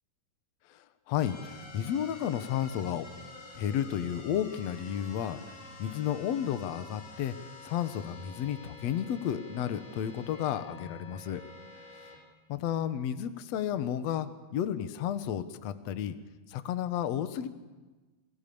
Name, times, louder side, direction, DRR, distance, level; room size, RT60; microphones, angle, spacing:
voice 1, 0.7-3.1 3.5-7.3 7.6-11.4 12.5-16.2 16.5-17.5, left 10 dB, 75° left, 10 dB, 1.5 m, -32 dB
sound 1, 1.2-12.2, left 3 dB, 55° left, 7.5 m, -49 dB
29.0 x 24.0 x 7.0 m, 1.2 s
omnidirectional pair, 4.9 m